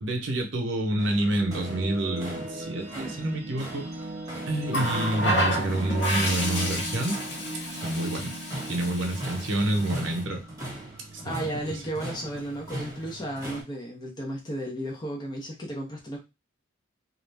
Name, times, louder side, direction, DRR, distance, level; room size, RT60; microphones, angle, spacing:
voice 1, 0.0-3.9 4.5-7.2 7.8-8.3 8.7-10.4 11.1-11.2, right 1 dB, 70° right, 2 dB, 0.7 m, -28 dB
sound 1, 1.0-13.6, right 1 dB, 15° right, 1.0 m, -41 dB
sound 2, 1.0-11.9, right 1 dB, 35° right, 0.5 m, -39 dB
Water tap faucet, 4.7-10.2 11.4-11.7, equal, 60° left, 0.7 m, -31 dB
voice 2, 11.2-16.2, right 1 dB, 20° left, -1 dB, 0.6 m, -34 dB
2.4 x 2.1 x 3.2 m, 0.25 s
head